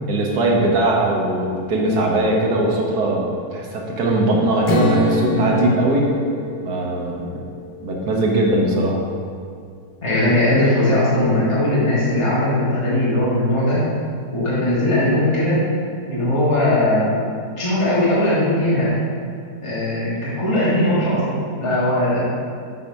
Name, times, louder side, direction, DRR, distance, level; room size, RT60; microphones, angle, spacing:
voice 1, 0.1-6.1 6.6-7.3 7.8-9.0, right 1 dB, 70° right, -1 dB, 1.7 m, -20 dB
Strum, 4.7-8.8, equal, 90° left, 1.4 m, -26 dB
voice 2, 10.0-13.9 14.3-15.6 16.0-17.1 17.6-18.9 19.6-22.2, left 1 dB, 20° left, -8 dB, 1.5 m, -19 dB
8.3 x 4.1 x 5.2 m, 2.2 s
omnidirectional pair, 1.7 m